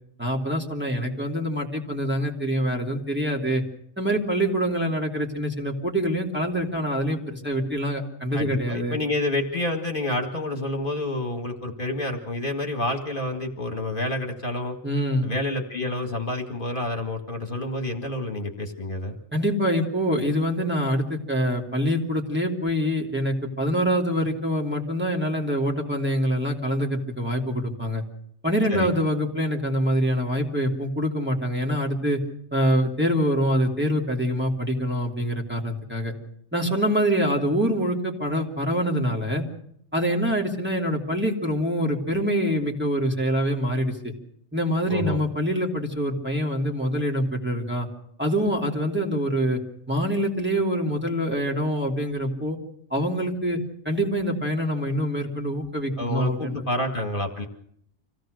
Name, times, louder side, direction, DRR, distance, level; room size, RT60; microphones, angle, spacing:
voice 1, 0.2-3.6 4.0-9.0 14.8-15.3 19.3-28.0 28.4-32.2 32.5-36.1 36.5-39.5 39.9-44.1 44.5-47.9 48.2-49.6 49.9-52.6 52.9-53.6 53.8-56.5, equal, 10° right, -1 dB, 2.9 m, -25 dB
voice 2, 8.3-14.8 15.2-19.1 28.7-28.9 44.9-45.2 56.0-57.5, left 1 dB, 45° left, 3 dB, 2.2 m, -28 dB
26.0 x 17.0 x 6.5 m, 0.69 s
omnidirectional pair, 1.2 m